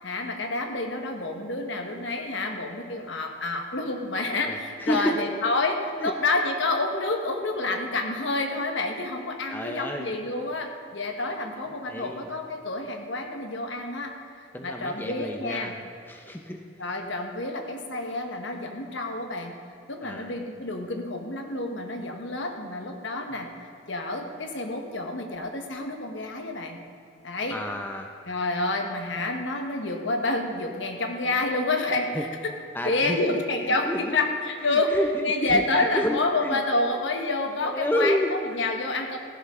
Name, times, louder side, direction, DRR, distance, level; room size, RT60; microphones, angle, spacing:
voice 1, 0.0-15.7 16.8-19.6 19.9-23.5 23.9-26.8 27.2-27.6 28.3-32.1 32.8-34.9 35.2-39.2, left 2 dB, 65° left, 4 dB, 1.2 m, -28 dB
voice 2, 4.4-5.3 5.8-6.1 9.5-10.1 11.3-11.4 11.9-12.3 14.5-15.8 16.1-16.7 20.0-20.3 23.3-23.4 27.5-28.1 31.3-31.4 32.1-32.2 32.7-33.4 33.7-34.2 34.6-37.0 37.4-38.6, left 1 dB, 10° left, 3 dB, 0.6 m, -30 dB
14.5 x 11.0 x 3.7 m, 2.5 s
head